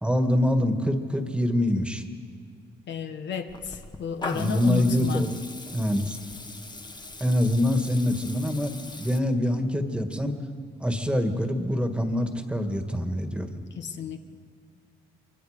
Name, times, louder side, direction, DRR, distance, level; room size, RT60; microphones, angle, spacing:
voice 1, 0.0-2.0 4.3-5.3 5.7-6.2 7.2-10.4 10.8-13.5, left 1 dB, 5° right, 6 dB, 1.8 m, -25 dB
voice 2, 2.9-5.2 13.7-14.2, left 7 dB, 65° left, 6 dB, 1.3 m, -32 dB
Water tap faucet / Liquid, 3.5-9.2, left 2 dB, 20° left, 1.5 m, -40 dB
24.5 x 24.0 x 5.1 m, 2.1 s
cardioid pair, 90°, 20 cm